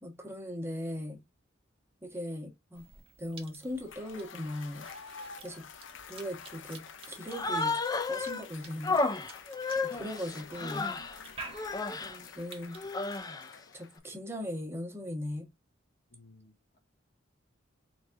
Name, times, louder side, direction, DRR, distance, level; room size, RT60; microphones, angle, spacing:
voice 1, 0.0-1.2 2.0-2.8 3.2-4.9 5.4-5.6 6.1-9.0 9.8-10.9 12.0-12.8 13.5-15.5, left 1 dB, 10° right, 1.3 m, -39 dB
Cough / Chewing mastication, 2.7-13.2, right 4 dB, 30° right, 1.1 m, -52 dB
Cheering / Applause / Crowd, 3.7-14.2, left 6 dB, 70° left, 0.5 m, -49 dB
Human voice, 7.3-8.4 8.8-11.2 11.5-12.2 12.7-13.5, left 3 dB, 20° left, 0.4 m, -32 dB
voice 2, 16.1-16.8, left 3 dB, 45° left, 0.9 m, -58 dB
4.2 x 4.1 x 2.6 m
head